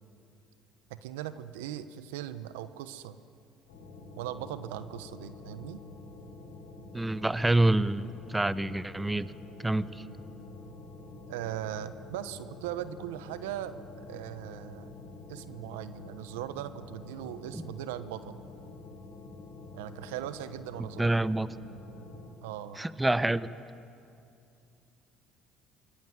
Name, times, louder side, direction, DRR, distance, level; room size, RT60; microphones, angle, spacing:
voice 1, 0.9-3.2 4.2-5.8 11.3-14.9 15.3-18.4 19.7-21.2 22.4-22.8, right 11 dB, 85° right, 12 dB, 1.1 m, -39 dB
sound 1, 3.7-22.3, left 3 dB, 85° left, 5.3 m, -48 dB
voice 2, 6.9-9.3 9.6-10.1 17.5-17.7 21.0-21.5 22.8-23.5, right 2 dB, 10° right, 15 dB, 0.9 m, -27 dB
27.5 x 22.5 x 9.5 m, 2.6 s
hypercardioid pair, 70°, 0 cm